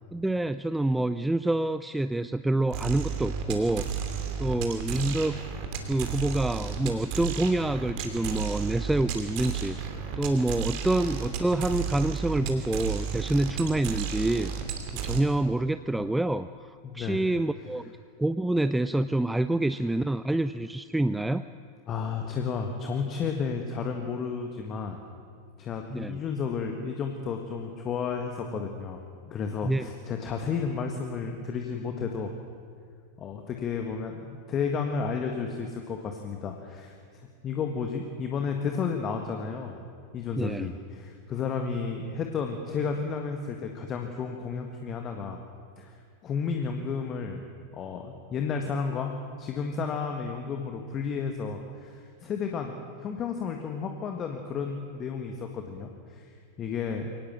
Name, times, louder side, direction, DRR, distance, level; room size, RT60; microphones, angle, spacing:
voice 1, 0.1-5.4 5.9-14.5 15.0-17.9 18.2-21.4 25.9-26.2 29.6-29.9 40.4-40.7, right 1 dB, 5° right, 12 dB, 0.4 m, -27 dB
sound 1, 2.7-15.2, right 7 dB, 45° right, 2.9 m, -33 dB
voice 2, 16.8-17.2 21.9-25.0 25.6-29.0 29.3-32.3 33.2-39.8 40.1-45.4 45.8-47.4 47.7-56.3 56.6-57.1, left 5 dB, 30° left, 4 dB, 1.7 m, -32 dB
23.5 x 18.5 x 7.4 m, 2.2 s
figure-of-eight pair, 90°, 0 cm